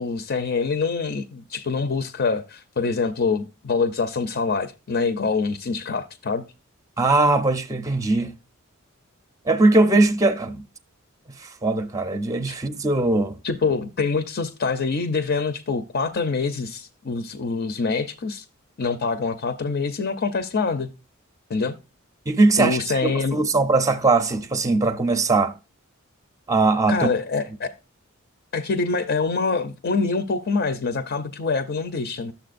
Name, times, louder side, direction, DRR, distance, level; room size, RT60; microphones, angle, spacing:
voice 1, 0.0-6.4 12.5-12.6 13.4-18.4 18.8-20.9 21.5-21.8 22.6-23.4 26.9-27.7 28.5-32.3, left 4 dB, 50° left, 0.5 m, -25 dB
voice 2, 7.0-8.3 9.5-10.6 11.4-13.4 22.3-25.5 26.5-27.1, right 2 dB, 15° right, 0.6 m, -20 dB
12.0 x 7.1 x 2.5 m
head